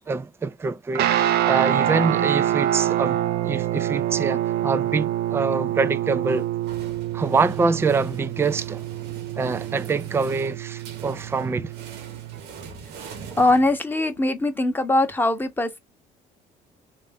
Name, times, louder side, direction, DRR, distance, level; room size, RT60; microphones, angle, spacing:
voice 1, 0.1-6.5 7.1-8.8 9.4-11.7, right 4 dB, 15° right, 0.4 m, -25 dB
Guitar, 0.9-12.4, right 12 dB, 70° right, 0.6 m, -26 dB
sound 1, 6.3-14.2, right 6 dB, 85° right, 1.0 m, -43 dB
voice 2, 13.4-15.8, left 2 dB, 10° left, 0.9 m, -21 dB
3.2 x 2.6 x 3.4 m
cardioid pair, 110°, 17 cm